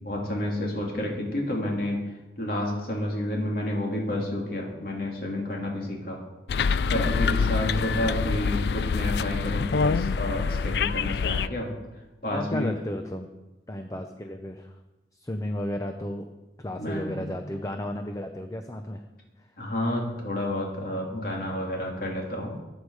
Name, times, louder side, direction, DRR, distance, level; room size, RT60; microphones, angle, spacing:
voice 1, 0.0-2.0 2.4-6.2 6.9-11.7 12.2-12.7 16.8-17.3 19.6-22.5, left 1 dB, 55° left, -1 dB, 3.0 m, -30 dB
sound 1, 6.5-11.5, left 5 dB, 70° left, 0.4 m, -26 dB
voice 2, 7.5-8.3 12.3-13.3 13.7-14.8 15.1-16.3 16.6-19.0 19.4-19.5, left 1 dB, 20° left, 5 dB, 0.7 m, -34 dB
23.0 x 8.3 x 4.9 m, 1.1 s
head